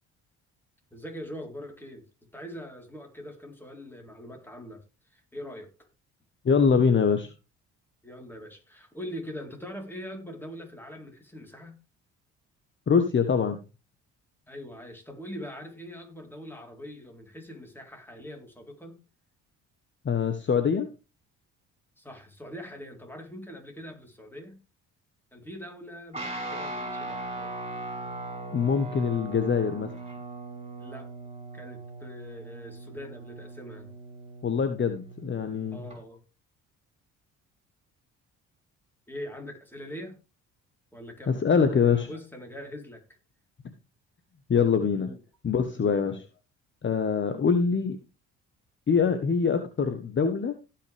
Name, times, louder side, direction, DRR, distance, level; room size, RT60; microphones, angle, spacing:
voice 1, 0.9-2.1 2.3-4.8 5.1-5.7 8.0-11.7 14.5-18.9 22.0-24.6 25.3-27.5 30.8-31.1 31.5-33.9 35.7-36.2 39.1-40.2 40.9-41.5 41.7-43.0 45.0-45.2 45.8-46.2, equal, 5° left, 2 dB, 4.0 m, -42 dB
voice 2, 6.4-7.3 12.9-13.6 20.0-20.9 28.5-29.9 34.4-35.8 41.3-42.1 44.5-45.1 45.4-46.2 46.8-48.0 48.9-50.5, left 6 dB, 35° left, 8 dB, 1.3 m, -24 dB
Guitar, 26.1-36.0, right 2 dB, 20° right, 5.1 m, -39 dB
17.5 x 5.9 x 3.5 m, 0.29 s
supercardioid pair, 70°, 33 cm